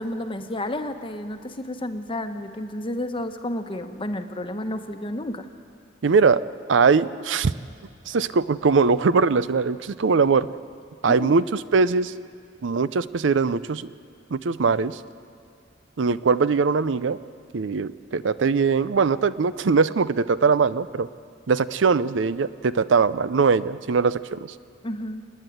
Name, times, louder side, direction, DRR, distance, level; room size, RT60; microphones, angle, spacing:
voice 1, 0.0-5.5 11.1-11.3 24.8-25.2, left 1 dB, 30° left, 7 dB, 1.1 m, -31 dB
voice 2, 6.0-6.4 6.7-7.5 8.1-10.5 11.0-12.1 12.6-13.9 14.3-15.0 16.0-17.2 17.5-21.1 21.5-24.5, right 5 dB, 70° right, 15 dB, 0.5 m, -21 dB
28.5 x 10.0 x 9.2 m, 2.4 s
head